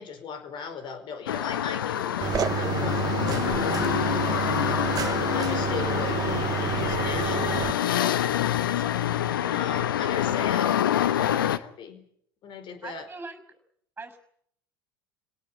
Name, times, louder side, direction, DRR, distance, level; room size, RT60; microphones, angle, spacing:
voice 1, 0.0-5.0 5.3-8.8 9.5-12.1 12.4-13.1, left 6 dB, 45° left, 10 dB, 4.7 m, -38 dB
sound 1, 1.3-11.6, left 11 dB, 75° left, 1.1 m, -26 dB
sound 2, 2.2-7.7, right 8 dB, 35° right, 1.8 m, -29 dB
voice 2, 12.8-13.4 14.0-14.2, right 3 dB, 15° right, 10 dB, 6.0 m, -40 dB
28.0 x 18.0 x 8.6 m, 0.69 s
hypercardioid pair, 80°, 11 cm